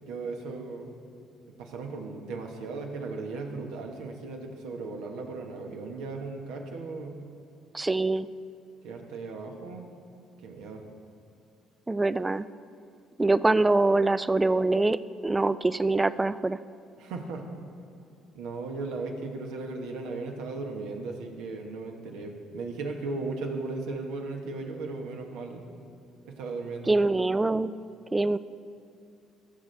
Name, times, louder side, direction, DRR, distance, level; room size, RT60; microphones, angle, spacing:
voice 1, 0.0-1.0 1.6-7.2 8.8-9.9 10.4-10.8 17.0-17.5 18.3-25.7 26.2-26.9, right 3 dB, 75° right, 3 dB, 1.1 m, -36 dB
voice 2, 7.7-8.3 11.9-12.5 13.2-15.0 15.2-16.6 26.9-27.7 28.1-28.4, right 2 dB, 20° right, 15 dB, 0.3 m, -24 dB
15.5 x 6.7 x 3.3 m, 2.5 s
hypercardioid pair, 60°, 0 cm